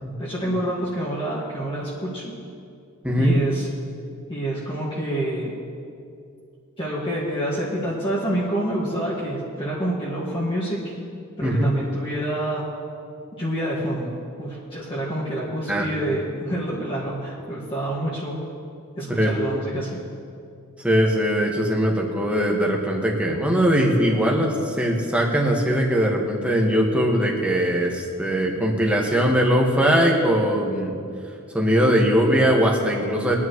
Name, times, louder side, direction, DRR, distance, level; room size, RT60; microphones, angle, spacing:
voice 1, 0.2-2.3 3.2-3.7 4.3-5.5 6.8-10.8 11.4-12.7 13.4-14.1 14.4-18.4 19.0-20.0, right 1 dB, 25° left, -7 dB, 1.9 m, -27 dB
voice 2, 3.0-3.4 11.4-11.6 15.7-15.9 19.1-19.3 20.8-31.0 31.5-33.3, equal, 5° right, -1 dB, 1.6 m, -20 dB
22.5 x 9.8 x 3.2 m, 2.4 s
head